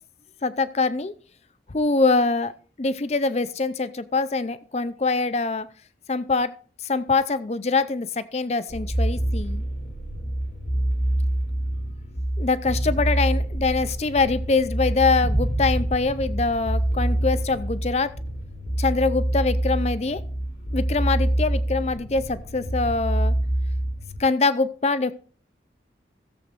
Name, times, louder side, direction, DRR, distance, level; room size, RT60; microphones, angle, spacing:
voice 1, 0.4-1.1 1.7-2.5 2.8-5.7 6.1-6.5 6.8-9.6 12.4-18.1 18.8-20.2 20.7-23.3 24.2-25.1, left 3 dB, 40° left, 14 dB, 0.5 m, -24 dB
sound 1, 8.7-24.2, right 1 dB, 75° left, 3.2 m, -26 dB
sound 2, 15.2-18.2, right 1 dB, 25° right, 0.6 m, -33 dB
16.5 x 7.8 x 2.5 m, 0.41 s
head